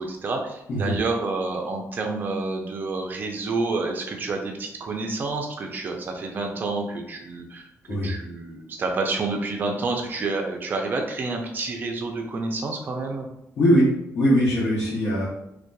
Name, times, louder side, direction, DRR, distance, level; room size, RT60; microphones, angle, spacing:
voice 1, 0.0-13.3, right 3 dB, 35° right, 2 dB, 0.4 m, -29 dB
voice 2, 13.6-13.9 14.1-15.3, equal, 65° left, -10 dB, 1.0 m, -20 dB
2.7 x 2.2 x 2.2 m, 0.81 s
cardioid pair, 135°, 6 cm